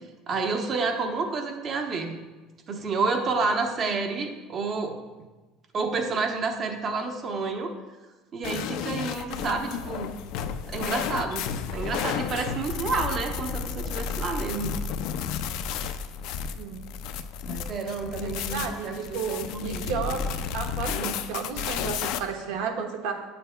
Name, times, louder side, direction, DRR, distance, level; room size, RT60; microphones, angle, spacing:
voice 1, 0.3-2.1 2.7-4.9 5.7-7.7 8.3-10.2 10.7-14.7 15.4-15.5 17.5-20.2 20.9-21.1, right 4 dB, 40° right, 4 dB, 0.9 m, -30 dB
sound 1, 8.4-22.2, left 7 dB, 70° left, 0.4 m, -32 dB
voice 2, 18.2-20.2 20.5-23.1, right 6 dB, 80° right, 3 dB, 1.0 m, -32 dB
8.5 x 6.9 x 2.2 m, 1.2 s
supercardioid pair, 120°, 0 cm